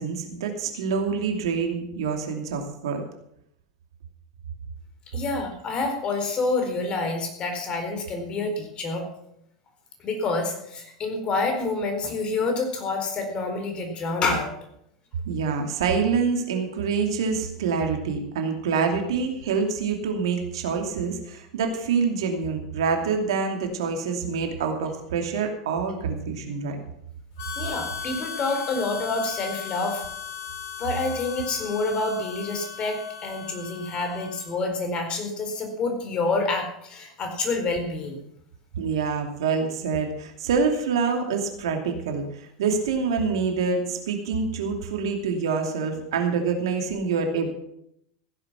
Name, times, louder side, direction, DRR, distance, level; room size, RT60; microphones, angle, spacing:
voice 1, 0.0-3.0 15.2-26.8 38.8-42.3 42.6-47.5, right 5 dB, 70° right, 4 dB, 2.7 m, -26 dB
voice 2, 5.1-9.1 10.0-14.5 27.6-30.0 30.8-38.2, left 3 dB, 35° left, 5 dB, 4.3 m, -28 dB
Harmonica, 27.4-34.7, left 6 dB, 60° left, 3.1 m, -37 dB
15.5 x 10.5 x 6.1 m, 0.75 s
figure-of-eight pair, 85°, 3 cm